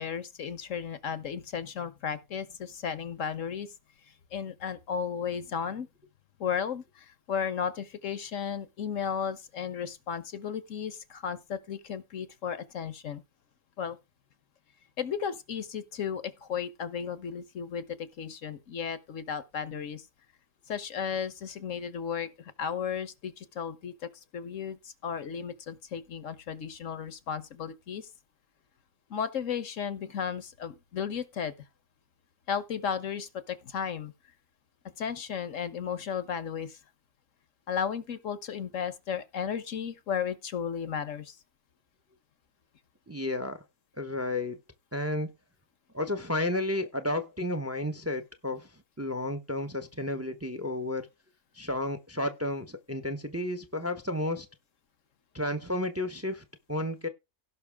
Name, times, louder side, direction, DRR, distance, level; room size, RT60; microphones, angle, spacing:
voice 1, 0.0-3.7 4.3-5.9 6.4-13.2 13.8-14.0 15.0-20.0 20.7-22.3 22.6-23.9 24.3-28.1 29.1-31.5 32.5-34.1 35.0-36.8 37.7-41.4, left 7 dB, 65° left, 1.3 m, -34 dB
voice 2, 43.1-43.6 44.0-44.6 44.9-45.3 45.9-48.7 49.0-51.1 51.5-54.5 55.3-57.1, left 1 dB, 10° right, 0.8 m, -32 dB
16.5 x 5.9 x 3.5 m
omnidirectional pair, 1.5 m